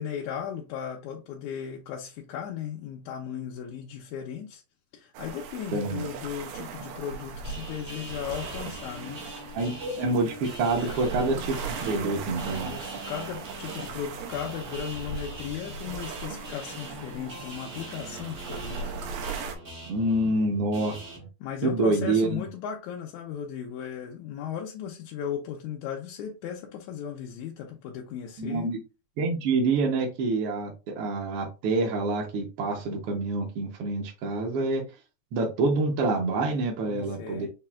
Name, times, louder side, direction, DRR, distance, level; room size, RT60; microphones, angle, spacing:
voice 1, 0.0-4.6 4.9-9.2 10.8-11.1 12.5-18.9 20.2-20.5 21.4-28.7 36.9-37.5, left 8 dB, 85° left, 2.0 m, -36 dB
sound 1, 5.1-19.6, right 5 dB, 85° right, 2.1 m, -38 dB
voice 2, 5.7-6.0 9.5-12.7 19.9-21.3 21.6-22.4 28.4-28.8 29.2-34.8 35.3-37.5, right 3 dB, 70° right, 1.4 m, -27 dB
sound 2, 7.4-21.2, equal, 50° right, 0.6 m, -43 dB
5.8 x 2.4 x 2.3 m
omnidirectional pair, 3.3 m